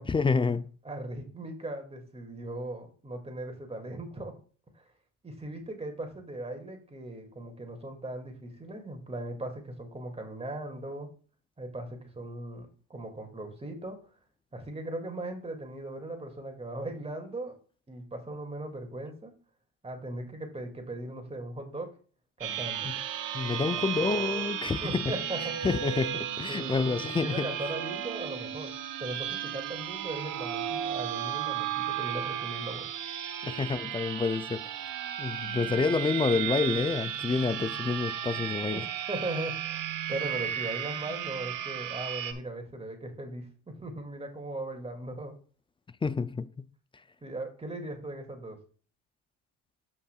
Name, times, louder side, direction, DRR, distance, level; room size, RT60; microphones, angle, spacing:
voice 1, 0.1-0.7 22.8-23.0 23.3-25.1 25.6-27.5 33.4-34.8 35.2-38.9 46.0-46.7, left 4 dB, 15° left, 0.4 m, -28 dB
voice 2, 0.8-4.4 4.7-4.8 5.2-11.1 11.6-14.0 14.5-17.6 17.9-19.3 19.8-21.9 22.4-22.9 23.4-24.0 24.8-25.6 26.5-28.7 29.0-32.9 38.7-45.3 47.2-48.6, right 1 dB, 15° right, 2.2 m, -38 dB
sound 1, 22.4-42.3, right 10 dB, 60° right, 1.1 m, -34 dB
13.5 x 5.6 x 2.3 m
cardioid pair, 95°, 35 cm